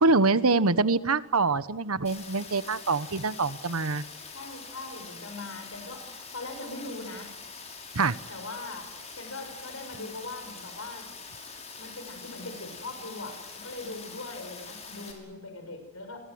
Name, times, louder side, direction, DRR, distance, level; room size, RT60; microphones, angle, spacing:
voice 1, 0.0-4.0 7.9-8.2, right 3 dB, 80° right, 14 dB, 1.2 m, -24 dB
Rain, 2.0-15.1, left 4 dB, 30° left, 6.2 m, -44 dB
voice 2, 4.3-7.3 8.3-8.9 9.2-11.1 11.8-16.2, left 2 dB, 75° left, 6 dB, 6.7 m, -40 dB
28.5 x 24.0 x 8.0 m, 0.96 s
head